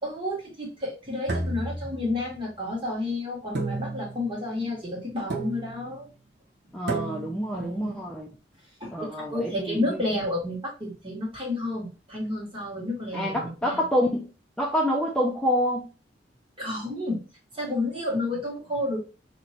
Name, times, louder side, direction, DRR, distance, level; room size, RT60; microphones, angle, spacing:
voice 1, 0.0-6.1 7.5-8.0 8.8-13.8 16.6-17.2 17.5-19.0, left 2 dB, 30° right, -3 dB, 1.8 m, -31 dB
sound 1, 1.3-2.5 3.5-4.3 5.3-5.9 6.9-7.5, right 2 dB, 70° right, 1.1 m, -32 dB
voice 2, 6.7-8.3 8.9-10.0 13.1-14.3 14.6-15.9, equal, 5° left, -1 dB, 0.5 m, -27 dB
3.1 x 3.0 x 3.9 m, 0.34 s
head